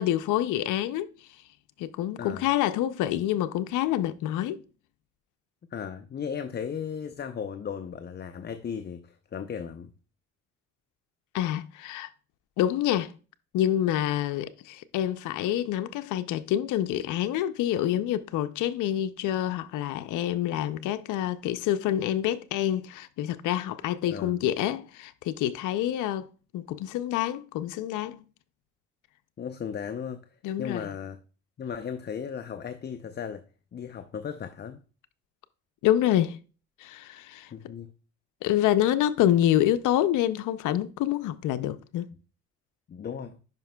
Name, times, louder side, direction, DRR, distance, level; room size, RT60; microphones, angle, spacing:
voice 1, 0.0-1.4 1.8-4.6 11.3-12.1 12.6-13.1 13.5-26.3 26.5-28.2 30.4-30.9 35.8-36.4 36.8-37.5 38.4-42.1, left 12 dB, 80° left, 0.5 m, -27 dB
voice 2, 5.7-9.9 24.1-24.3 29.4-30.3 30.6-31.2 31.6-33.4 33.7-34.8 37.5-37.9 42.9-43.4, left 7 dB, 35° left, 0.5 m, -36 dB
10.5 x 5.1 x 2.2 m
cardioid pair, 90°, 30 cm